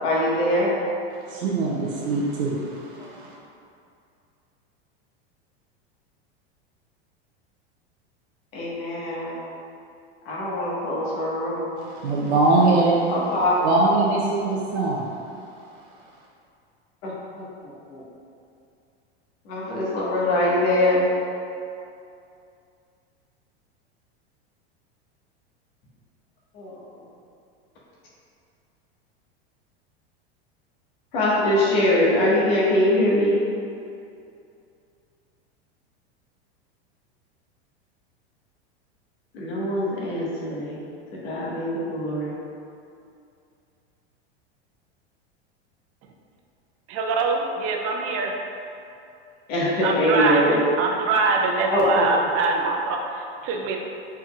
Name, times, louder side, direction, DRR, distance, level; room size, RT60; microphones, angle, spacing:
voice 1, 0.0-0.7 8.5-9.3 10.3-11.7 13.1-13.6 17.0-17.1 17.4-18.0 19.5-21.0 26.5-26.7 31.1-33.4 39.3-40.8 41.2-42.3 49.5-50.6 51.7-52.1, left 1 dB, 65° left, -6 dB, 1.5 m, -23 dB
voice 2, 1.3-3.3 11.8-13.0 13.6-15.1, right 2 dB, 85° right, -4 dB, 0.7 m, -22 dB
voice 3, 46.9-48.3 49.8-53.8, right 3 dB, 45° right, 2 dB, 0.7 m, -24 dB
4.6 x 4.5 x 2.4 m, 2.5 s
hypercardioid pair, 105°, 32 cm